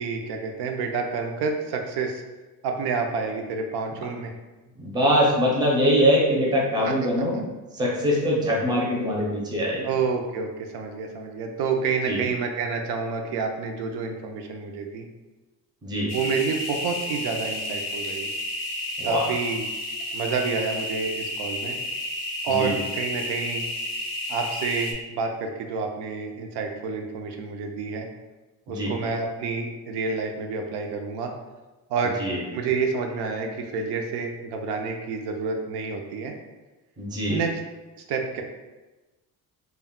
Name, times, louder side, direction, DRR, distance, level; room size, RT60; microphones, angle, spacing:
voice 1, 0.0-2.2 2.6-4.3 6.9-7.0 9.8-15.0 16.1-18.3 19.0-19.6 20.1-21.8 22.4-23.7 24.3-28.1 28.7-31.3 31.9-32.2 32.5-36.3 37.3-37.6 38.0-38.4, right 5 dB, 85° right, 3 dB, 0.5 m, -28 dB
voice 2, 4.8-7.5 7.7-9.9 12.1-12.2 15.8-16.1 19.0-19.3 22.5-22.8 28.7-28.9 32.2-32.4 37.0-37.4, equal, 10° right, -3 dB, 0.5 m, -23 dB
sound 1, 16.1-24.9, left 1 dB, 45° left, 0.5 m, -31 dB
2.2 x 2.1 x 3.6 m, 1.1 s
cardioid pair, 150°, 38 cm